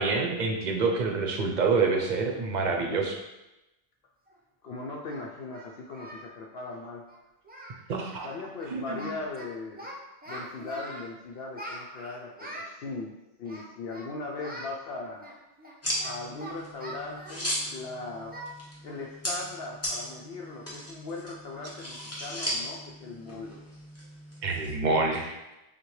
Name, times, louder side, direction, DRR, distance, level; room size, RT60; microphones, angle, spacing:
voice 1, 0.0-3.2 7.9-8.3 8.7-9.1 24.4-25.5, right 4 dB, 50° right, 2 dB, 0.7 m, -27 dB
Singing, 4.3-4.4 5.1-6.3 6.6-6.8 7.1-7.2 7.4-7.8 8.1-8.3 8.6-9.5 9.8-11.1 11.5-12.7 13.4-14.1 14.4-14.7 15.2-17.8 18.3-18.5 18.9-19.0 19.5-19.6 20.0-20.3, right 1 dB, 10° right, 0.4 m, -43 dB
voice 2, 4.6-7.0 8.2-9.9 10.3-13.1 13.4-15.2 16.0-18.4 18.8-23.6, left 3 dB, 70° left, -1 dB, 0.8 m, -39 dB
sound 1, 15.8-24.7, equal, 15° left, 0.8 m, -37 dB
6.4 x 2.2 x 3.0 m, 0.97 s
omnidirectional pair, 1.1 m